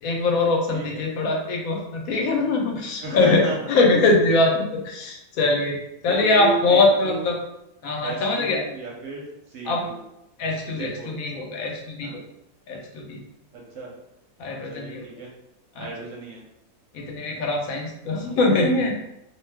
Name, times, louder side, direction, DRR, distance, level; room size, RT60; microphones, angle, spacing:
voice 1, 0.0-5.8 6.0-7.4 7.8-8.6 9.7-9.8 10.4-12.2 12.7-13.2 14.4-15.0 15.8-15.9 16.9-18.9, left 2 dB, 70° left, 0 dB, 1.0 m, -22 dB
voice 2, 0.7-1.1 3.0-3.6 6.0-7.3 8.0-10.0 10.8-11.1 12.0-12.2 13.5-13.9 14.7-15.3 15.8-16.4, right 4 dB, 65° right, -2 dB, 0.8 m, -34 dB
2.6 x 2.3 x 3.3 m, 0.84 s
omnidirectional pair, 1.7 m